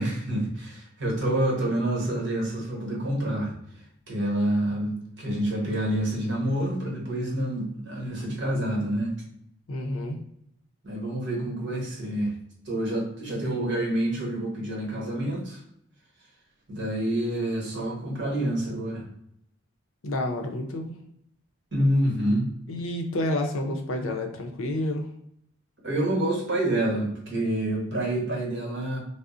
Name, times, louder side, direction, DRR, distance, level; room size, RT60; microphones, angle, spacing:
voice 1, 0.0-3.5 4.1-9.1 10.8-12.3 12.6-15.6 16.7-19.0 21.7-22.5 25.8-29.0, right 1 dB, 55° right, -2 dB, 1.1 m, -27 dB
voice 2, 9.7-10.2 20.0-20.9 22.7-25.1, left 1 dB, 80° left, 4 dB, 0.5 m, -29 dB
2.4 x 2.0 x 3.7 m, 0.72 s
head